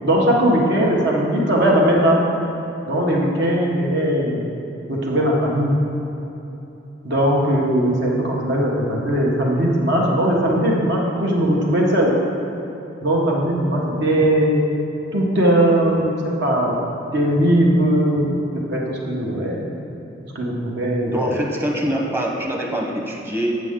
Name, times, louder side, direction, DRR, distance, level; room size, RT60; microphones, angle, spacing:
voice 1, 0.0-2.2 2.9-4.4 4.9-5.7 7.0-12.1 13.0-14.6 15.1-16.8 17.1-18.3 18.7-19.7 20.3-21.3, right 1 dB, 65° right, -2 dB, 1.4 m, -19 dB
voice 2, 21.1-23.6, equal, 10° right, -1 dB, 1.0 m, -24 dB
8.2 x 7.6 x 3.8 m, 3.0 s
head